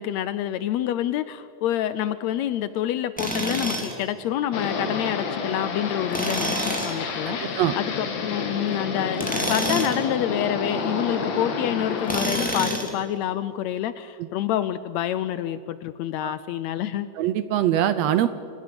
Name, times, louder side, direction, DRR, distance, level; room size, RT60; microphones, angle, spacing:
voice 1, 0.0-17.1, left 11 dB, 80° left, 14 dB, 1.6 m, -27 dB
Tools, 3.2-4.0 6.1-7.0 9.1-10.0 12.0-13.0, equal, 5° left, 2.7 m, -27 dB
sound 1, 4.5-12.3, left 4 dB, 60° left, 3.0 m, -30 dB
voice 2, 7.3-7.8 14.2-14.3 16.2-16.3 17.2-18.3, right 11 dB, 75° right, 13 dB, 1.5 m, -23 dB
28.0 x 16.0 x 6.9 m, 2.7 s
omnidirectional pair, 3.6 m